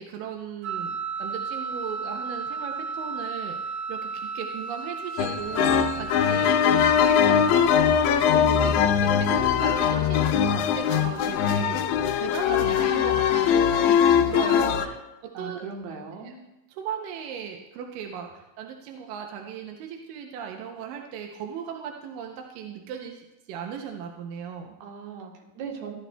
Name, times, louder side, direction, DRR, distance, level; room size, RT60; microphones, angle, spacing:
voice 1, 0.0-13.9 14.3-14.9 15.4-15.6 16.2-16.3 16.7-24.7, right 7 dB, 85° right, 2 dB, 2.4 m, -37 dB
Wind instrument woodwind instrument, 0.6-7.6, right 5 dB, 50° right, 1.3 m, -34 dB
sound 1, 5.2-14.9, left 8 dB, 85° left, 1.7 m, -21 dB
voice 2, 15.3-16.4 24.8-25.9, right 6 dB, 65° right, 2 dB, 2.3 m, -39 dB
16.0 x 11.0 x 2.2 m, 0.98 s
omnidirectional pair, 3.9 m